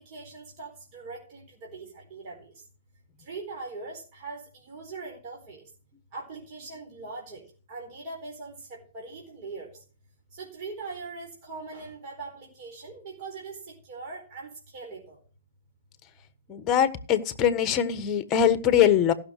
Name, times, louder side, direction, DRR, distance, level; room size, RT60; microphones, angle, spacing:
voice 1, 0.0-2.5 3.2-5.6 6.1-7.4 7.7-9.7 10.3-15.2, right 3 dB, 40° right, 0 dB, 4.3 m, -41 dB
voice 2, 16.5-19.1, left 9 dB, 20° left, 12 dB, 1.3 m, -22 dB
16.0 x 6.4 x 6.5 m, 0.42 s
hypercardioid pair, 140°, 0 cm